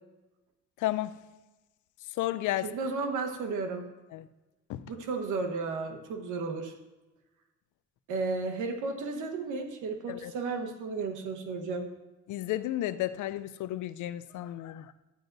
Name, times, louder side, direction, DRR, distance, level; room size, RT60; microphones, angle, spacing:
voice 1, 0.8-1.1 2.2-2.7 4.1-4.3 4.7-4.8 10.1-10.3 12.3-14.9, left 14 dB, 75° left, 13 dB, 0.5 m, -32 dB
voice 2, 2.6-3.9 4.9-6.7 8.1-11.9, right 4 dB, 85° right, 5 dB, 1.3 m, -33 dB
12.5 x 9.0 x 2.6 m, 1.1 s
cardioid pair, 90°, 30 cm